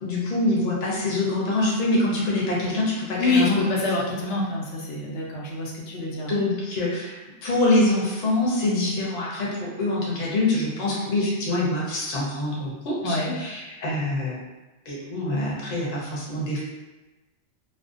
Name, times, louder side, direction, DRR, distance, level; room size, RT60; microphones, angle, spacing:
voice 1, 0.0-3.6 5.9-14.4 14.9-16.6, left 2 dB, 45° left, -5 dB, 0.7 m, -25 dB
voice 2, 3.2-6.4 13.0-13.4, left 2 dB, 90° left, -3 dB, 0.9 m, -26 dB
2.5 x 2.1 x 2.4 m, 1.1 s
omnidirectional pair, 1.2 m